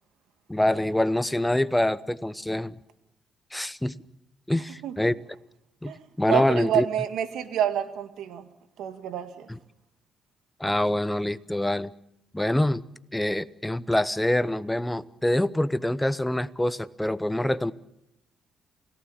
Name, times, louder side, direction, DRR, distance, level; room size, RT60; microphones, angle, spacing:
voice 1, 0.5-2.7 3.5-3.9 4.5-5.1 5.8-5.9 6.2-6.9 9.5-9.6 10.6-11.9 12.3-12.8 13.1-17.7, left 1 dB, 5° left, 15 dB, 0.9 m, -25 dB
voice 2, 5.8-8.5 8.8-9.5, right 10 dB, 80° right, 8 dB, 1.9 m, -28 dB
29.0 x 18.0 x 7.2 m, 0.82 s
cardioid pair, 90°, 0 cm